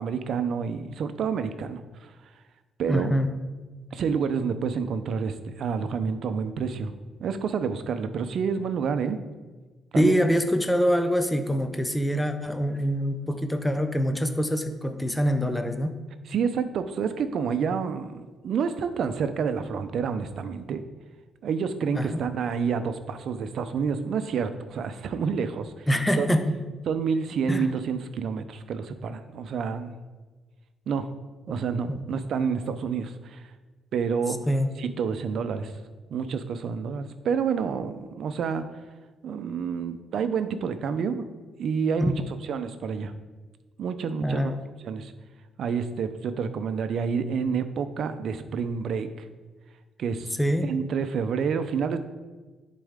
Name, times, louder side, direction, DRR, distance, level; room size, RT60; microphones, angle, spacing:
voice 1, 0.0-2.1 2.8-3.1 3.9-6.9 7.2-9.2 9.9-10.2 16.3-20.8 21.4-25.8 26.2-26.3 26.9-29.9 30.9-31.1 31.5-33.4 33.9-34.4 34.8-35.7 36.1-38.6 39.2-41.3 41.6-42.1 42.4-43.1 43.8-44.5 44.8-45.1 45.6-49.3 50.0-50.4 50.6-52.0, right 6 dB, 65° right, 10 dB, 0.6 m, -28 dB
voice 2, 2.9-3.3 9.9-15.9 21.9-22.2 25.9-26.5 27.5-27.7 31.9-32.0 34.5-34.7 44.2-44.6 50.4-50.7, equal, 10° left, 7 dB, 0.6 m, -25 dB
11.0 x 4.2 x 3.6 m, 1.3 s
cardioid pair, 90°, 0 cm